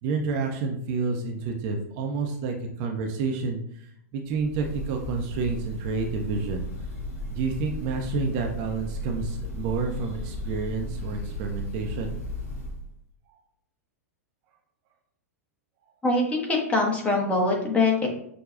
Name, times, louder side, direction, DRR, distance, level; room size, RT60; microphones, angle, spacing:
voice 1, 0.0-3.8 4.1-6.7 7.3-12.1, right 4 dB, 45° right, 2 dB, 0.6 m, -29 dB
Breathing / Bird, 4.3-12.9, left 1 dB, 55° left, 1.5 m, -35 dB
voice 2, 16.0-18.1, left 2 dB, 15° left, 0 dB, 1.0 m, -23 dB
6.2 x 2.2 x 2.4 m, 0.70 s
figure-of-eight pair, 105°, 9 cm